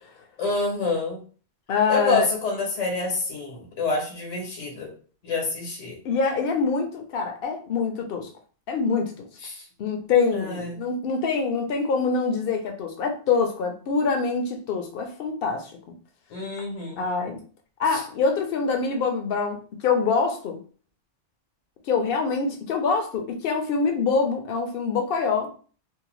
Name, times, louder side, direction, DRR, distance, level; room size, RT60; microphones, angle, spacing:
voice 1, 0.4-1.2 1.9-4.9 5.2-6.0 9.4-9.6 10.3-10.8 16.3-17.0 17.9-18.0, left 3 dB, 85° left, 1.2 m, -27 dB
voice 2, 1.7-2.2 6.0-8.3 8.7-9.1 9.8-15.7 17.0-17.4 17.8-20.6 21.9-25.5, left 5 dB, 60° left, 0.7 m, -25 dB
2.7 x 2.1 x 3.0 m
omnidirectional pair, 1.2 m